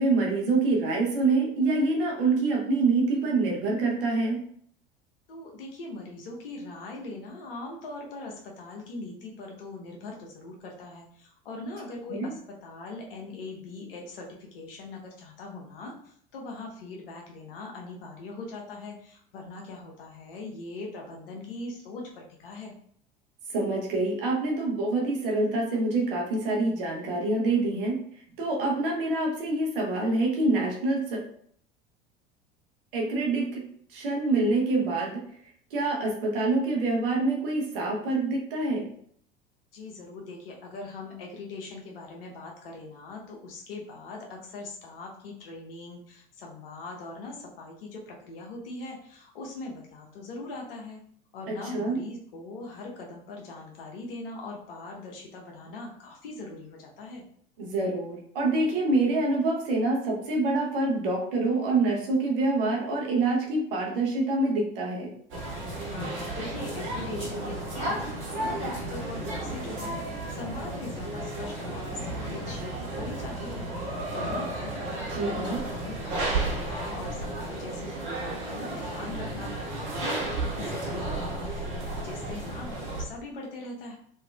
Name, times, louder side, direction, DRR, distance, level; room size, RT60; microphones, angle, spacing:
voice 1, 0.0-4.4 12.1-12.3 23.5-28.0 28.4-31.2 32.9-35.2 35.7-38.9 51.5-52.0 57.6-65.1 75.1-75.6, right 2 dB, 65° right, -1 dB, 0.9 m, -26 dB
voice 2, 5.3-12.3 12.6-22.7 39.7-51.0 51.3-57.2 65.8-69.9 70.3-84.0, left 2 dB, 70° left, 0 dB, 0.9 m, -41 dB
sound 1, 65.3-83.0, right 2 dB, 40° right, 1.2 m, -33 dB
3.2 x 2.7 x 2.3 m, 0.62 s
figure-of-eight pair, 75°, 29 cm